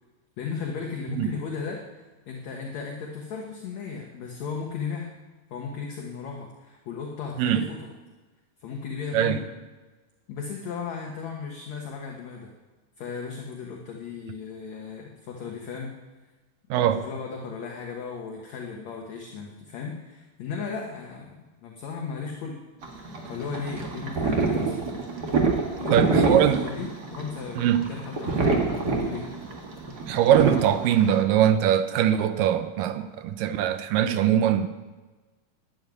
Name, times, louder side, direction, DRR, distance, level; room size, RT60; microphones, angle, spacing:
voice 1, 0.4-1.8 2.3-5.1 5.5-7.9 8.6-9.5 10.3-12.5 13.0-15.9 16.7-22.6 23.3-24.8 25.8-28.6 29.0-29.3, left 5 dB, 60° left, 0 dB, 2.1 m, -35 dB
voice 2, 16.7-17.0 25.9-26.6 27.6-27.9 30.1-34.7, right 10 dB, 75° right, 10 dB, 2.1 m, -22 dB
sound 1, 22.8-31.2, right 4 dB, 45° right, 1.4 m, -26 dB
12.5 x 7.6 x 9.4 m, 1.2 s
omnidirectional pair, 4.3 m